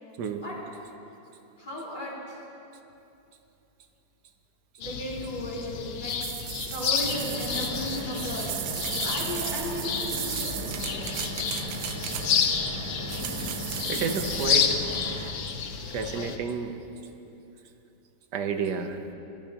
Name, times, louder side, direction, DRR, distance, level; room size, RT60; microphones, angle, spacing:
voice 1, 1.6-2.4 4.8-6.2 6.7-11.0, equal, 25° left, -8 dB, 3.6 m, -35 dB
sound 1, 4.8-16.4, left 7 dB, 60° left, 1.1 m, -30 dB
sound 2, 6.1-12.6 13.1-14.6, right 11 dB, 85° right, 1.4 m, -36 dB
sound 3, 7.1-15.3, right 2 dB, 45° right, 1.3 m, -38 dB
voice 2, 13.9-14.7 15.9-16.7 18.3-19.0, right 5 dB, 70° right, 6 dB, 1.4 m, -30 dB
22.5 x 13.0 x 2.9 m, 2.9 s
omnidirectional pair, 2.0 m